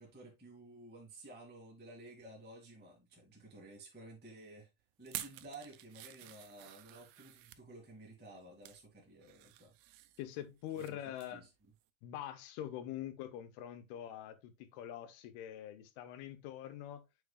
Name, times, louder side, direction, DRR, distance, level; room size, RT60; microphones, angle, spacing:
voice 1, 0.0-4.7 5.0-9.7 10.7-11.5, right 2 dB, 5° right, 0.8 m, -54 dB
sound 1, 5.0-7.6 8.3-8.8 9.2-10.9 11.2-11.4 11.8-11.9, right 14 dB, 80° right, 2.3 m, -50 dB
voice 2, 10.2-11.5 12.0-17.1, left 11 dB, 90° left, 2.7 m, -44 dB
7.1 x 6.3 x 2.3 m
omnidirectional pair, 4.6 m